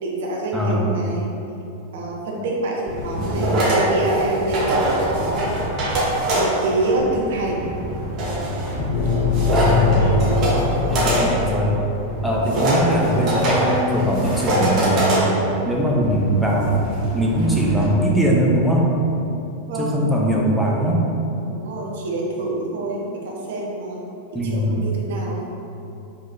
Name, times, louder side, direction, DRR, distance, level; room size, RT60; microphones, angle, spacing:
voice 1, 0.0-1.3 1.9-5.5 6.3-7.7 10.0-10.2 19.7-20.0 21.5-25.4, right 2 dB, 55° right, -2 dB, 0.8 m, -26 dB
voice 2, 0.5-0.9 3.2-3.6 9.5-10.1 10.9-11.7 12.2-15.3 15.6-18.9 19.8-21.0 24.3-24.8, equal, ahead, -4 dB, 0.8 m, -21 dB
sound 1, 2.9-17.8, right 1 dB, 35° right, 1.2 m, -24 dB
sound 2, 8.7-12.5, left 5 dB, 40° left, 0.8 m, -23 dB
5.1 x 3.8 x 2.7 m, 2.7 s
figure-of-eight pair, 90°, 0 cm